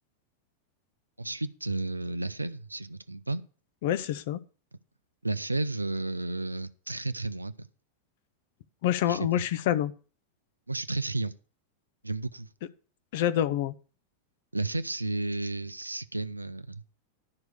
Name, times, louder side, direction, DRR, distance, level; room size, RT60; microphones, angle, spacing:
voice 1, 1.2-3.4 5.2-7.7 9.1-9.4 10.7-11.3 12.0-12.5 14.5-16.8, right 2 dB, 85° right, 0.5 m, -32 dB
voice 2, 3.8-4.4 8.8-9.9 13.1-13.7, left 11 dB, 50° left, 0.6 m, -27 dB
11.5 x 4.7 x 6.7 m
figure-of-eight pair, 90°, 0 cm